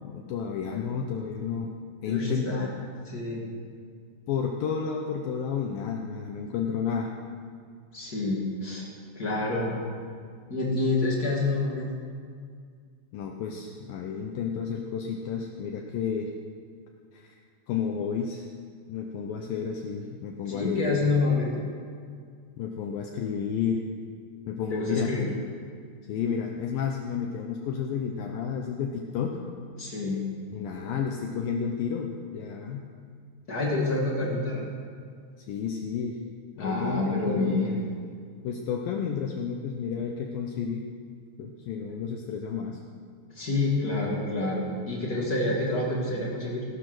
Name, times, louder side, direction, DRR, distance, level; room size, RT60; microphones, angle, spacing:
voice 1, 0.0-1.7 2.0-2.7 4.3-7.2 13.1-16.3 17.1-17.3 17.7-18.5 18.9-21.1 22.6-23.8 24.5-25.1 26.1-29.4 30.5-32.9 35.4-36.2 36.5-37.6 38.4-40.9 41.4-42.8, left 7 dB, 90° left, 1 dB, 2.0 m, -31 dB
voice 2, 2.1-2.7 3.1-3.4 7.9-8.9 9.1-9.7 10.5-11.9 20.4-21.7 24.7-25.3 29.8-30.2 33.5-34.6 36.6-37.8 43.3-46.6, left 2 dB, 40° left, -3 dB, 1.3 m, -27 dB
17.0 x 11.5 x 6.2 m, 2.1 s
omnidirectional pair, 5.3 m